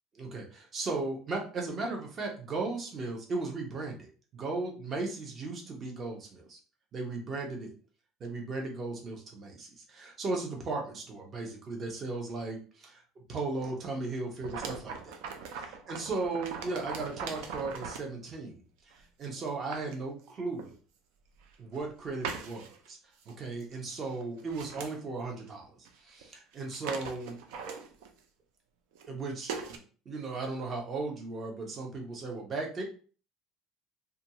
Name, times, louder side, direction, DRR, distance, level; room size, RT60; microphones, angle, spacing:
voice 1, 0.2-6.6 6.9-7.7 8.2-13.0 13.3-15.1 15.6-18.6 19.2-20.7 21.6-23.0 23.3-25.7 26.0-27.4 29.1-29.8 30.1-32.8, right 3 dB, 35° right, 1 dB, 0.7 m, -36 dB
sound 1, 14.4-18.1 18.9-19.0 19.5-20.0 20.6-20.7 21.4-21.9 22.2-22.9 23.2-23.3 23.6-23.8 24.1-24.9 25.8-25.9 26.2-26.3 26.5-28.2 28.9-29.1 29.5-29.8, right 5 dB, 90° right, 0.4 m, -40 dB
2.5 x 2.3 x 2.8 m, 0.39 s
cardioid pair, 130°, 0 cm